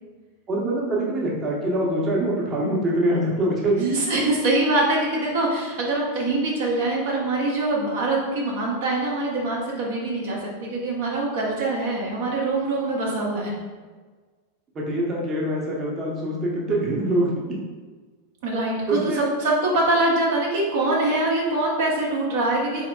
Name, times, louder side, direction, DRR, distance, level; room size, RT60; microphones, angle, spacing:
voice 1, 0.5-3.8 14.7-17.3 18.9-19.2, right 1 dB, 25° right, -3 dB, 0.8 m, -24 dB
voice 2, 3.8-13.5 18.4-22.9, right 2 dB, 55° right, -3 dB, 0.8 m, -24 dB
4.1 x 3.4 x 2.3 m, 1.4 s
figure-of-eight pair, 85°, 0 cm